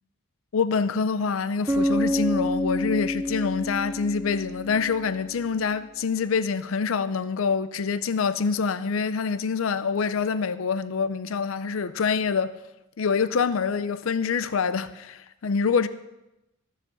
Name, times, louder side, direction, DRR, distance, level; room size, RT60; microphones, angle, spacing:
voice 1, 0.5-12.5 13.0-15.9, left 5 dB, 85° left, 0.5 m, -26 dB
Bass guitar, 1.7-5.5, left 1 dB, 15° right, 0.7 m, -28 dB
14.0 x 7.3 x 6.9 m
head